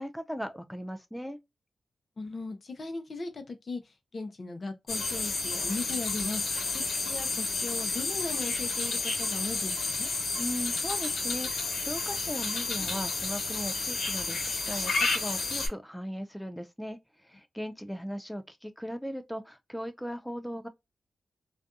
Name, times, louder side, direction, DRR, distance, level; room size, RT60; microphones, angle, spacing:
voice 1, 0.0-1.4 10.4-20.7, equal, ahead, 0.3 m, -38 dB
voice 2, 2.2-6.4 6.7-10.1, left 3 dB, 55° left, 0.7 m, -38 dB
sound 1, 4.9-15.7, left 3 dB, 75° left, 1.2 m, -31 dB
2.6 x 2.2 x 2.4 m
cardioid pair, 50°, 0 cm